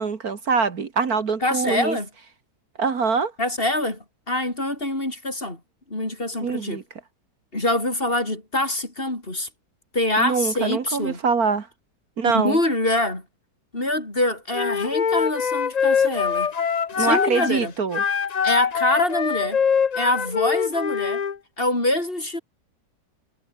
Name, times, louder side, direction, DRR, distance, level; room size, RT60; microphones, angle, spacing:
voice 1, 0.0-2.0 2.8-3.3 6.4-6.8 10.2-11.7 12.2-12.6 17.0-18.0, right 5 dB, 60° right, 2.2 m, -24 dB
voice 2, 1.4-2.1 3.4-5.6 5.9-6.8 7.5-9.5 9.9-11.2 12.3-13.3 13.7-16.5 17.0-17.7 18.4-19.6 19.9-21.2 21.6-22.4, left 1 dB, 30° left, 5.3 m, -25 dB
Wind instrument woodwind instrument, 14.5-17.5 17.9-21.3, left 6 dB, 60° left, 0.4 m, -23 dB
omnidirectional pair, 1.8 m